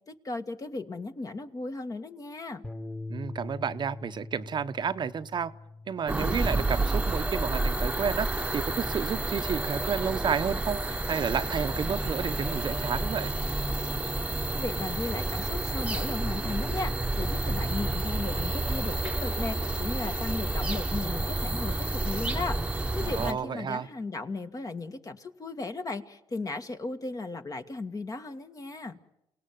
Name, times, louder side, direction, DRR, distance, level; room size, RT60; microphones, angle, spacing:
voice 1, 0.1-2.6 14.5-29.0, left 3 dB, 35° left, 7 dB, 1.8 m, -36 dB
Bass guitar, 2.6-8.9, left 2 dB, 15° left, 2.1 m, -44 dB
voice 2, 3.1-5.5 5.9-8.3 8.5-13.3 23.0-23.9, right 7 dB, 45° right, 10 dB, 0.9 m, -31 dB
sound 1, 6.1-23.3, right 2 dB, 10° right, 1.2 m, -30 dB
28.5 x 18.0 x 9.3 m, 0.90 s
supercardioid pair, 75°, 10 cm